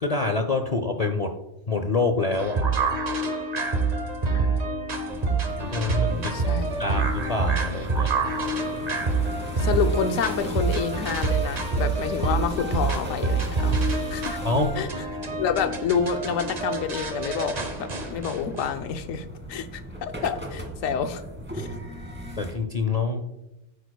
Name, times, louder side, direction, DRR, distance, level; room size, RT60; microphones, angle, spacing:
voice 1, 0.0-1.3 1.7-2.7 5.3-8.1 14.4-14.8 22.4-23.2, left 3 dB, 45° left, 6 dB, 0.5 m, -26 dB
sound 1, 2.3-18.7, right 3 dB, 35° right, 0.9 m, -27 dB
sound 2, 5.1-22.5, equal, 10° right, 1.7 m, -38 dB
voice 2, 6.1-6.7 9.6-13.8 14.1-14.4 14.8-14.9 15.4-21.2 21.5-21.7, left 7 dB, 80° left, 8 dB, 1.1 m, -28 dB
11.5 x 9.2 x 2.3 m, 0.92 s
omnidirectional pair, 1.4 m